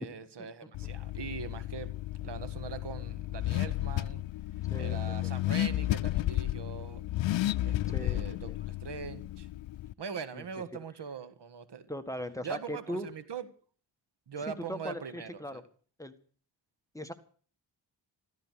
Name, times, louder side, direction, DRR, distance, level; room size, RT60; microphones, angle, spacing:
voice 1, 0.0-1.9 2.2-4.2 4.7-7.0 7.6-9.5 10.0-11.9 12.4-13.5 14.3-15.6, right 6 dB, 65° right, 1.7 m, -42 dB
Car / Accelerating revving vroom, 0.7-9.9, left 15 dB, 80° left, 0.6 m, -33 dB
voice 2, 7.9-8.2 10.3-10.4 11.9-13.1 14.4-15.6 16.0-16.1 16.9-17.1, equal, 5° left, 1.7 m, -39 dB
14.5 x 13.5 x 6.4 m
cardioid pair, 80°, 45 cm